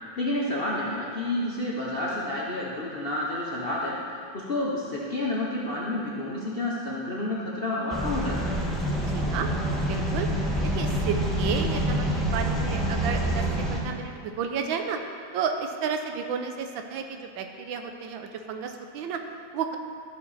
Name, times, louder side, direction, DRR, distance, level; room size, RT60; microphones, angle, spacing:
voice 1, 0.2-4.0 4.3-8.5, left 1 dB, 50° left, -5 dB, 0.7 m, -29 dB
sound 1, 7.9-13.8, right 1 dB, ahead, 0.9 m, -27 dB
voice 2, 9.1-9.5 9.9-10.3 10.6-12.0 12.3-13.4 13.7-15.0 15.3-19.2 19.5-19.8, right 6 dB, 80° right, 5 dB, 1.4 m, -32 dB
13.0 x 5.7 x 4.1 m, 2.3 s
omnidirectional pair, 2.1 m